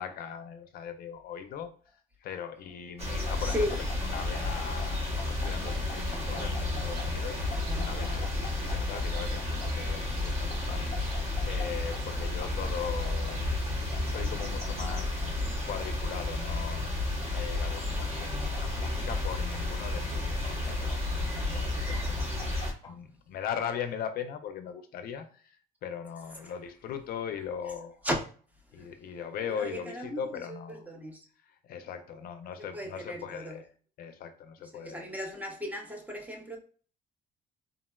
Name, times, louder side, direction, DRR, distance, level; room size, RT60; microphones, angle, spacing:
voice 1, 0.0-1.9 2.2-13.4 14.1-22.2 22.6-28.0 28.7-30.9 31.4-33.7 34.0-35.2, left 8 dB, 60° left, 0.4 m, -40 dB
sound 1, 3.0-22.7, left 2 dB, 40° right, 0.8 m, -32 dB
sound 2, 3.3-4.9 5.2-7.1 7.5-9.7 10.5-11.7 11.9-12.0 12.4-13.4 13.9-15.0 15.6-16.5 17.3-18.3 18.5-19.8 20.4-21.4 21.9-22.9, left 4 dB, 30° left, 0.8 m, -45 dB
voice 2, 3.4-3.7 28.0-28.2 28.8-28.9 29.5-31.2 32.7-33.6 34.7-36.6, equal, 10° right, 0.5 m, -35 dB
sound 3, 5.4-14.3, right 3 dB, 70° right, 0.5 m, -48 dB
3.6 x 2.0 x 2.2 m
cardioid pair, 110°, 17 cm